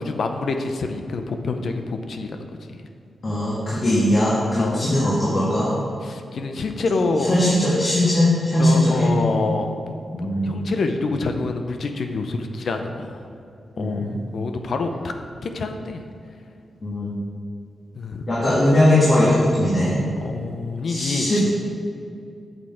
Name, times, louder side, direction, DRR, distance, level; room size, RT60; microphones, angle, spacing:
voice 1, 0.0-2.4 4.6-4.9 6.0-7.3 8.6-9.9 10.4-13.2 13.8-15.1 15.4-16.0 17.9-18.2 20.2-21.4, left 3 dB, 65° left, 6 dB, 0.6 m, -26 dB
voice 2, 3.2-5.7 7.3-9.2 10.1-10.7 13.8-14.2 16.8-17.1 18.3-19.9 20.9-21.5, left 1 dB, 45° left, -8 dB, 1.7 m, -20 dB
7.9 x 6.5 x 4.3 m, 2.5 s
wide cardioid pair, 105°, 0 cm